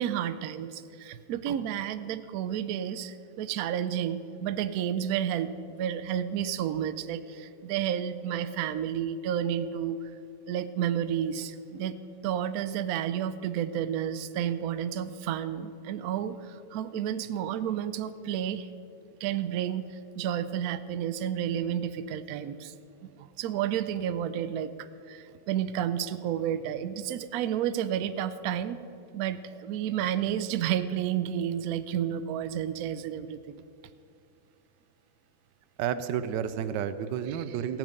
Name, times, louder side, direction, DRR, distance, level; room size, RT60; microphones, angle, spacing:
voice 1, 0.0-10.0 10.5-12.0 12.2-18.7 19.2-22.7 23.0-28.8 29.1-33.6 37.3-37.6, right 10 dB, 90° right, 12 dB, 0.8 m, -31 dB
voice 2, 35.8-37.8, right 9 dB, 75° right, 12 dB, 1.1 m, -31 dB
15.5 x 9.1 x 5.2 m, 2.6 s
omnidirectional pair, 2.2 m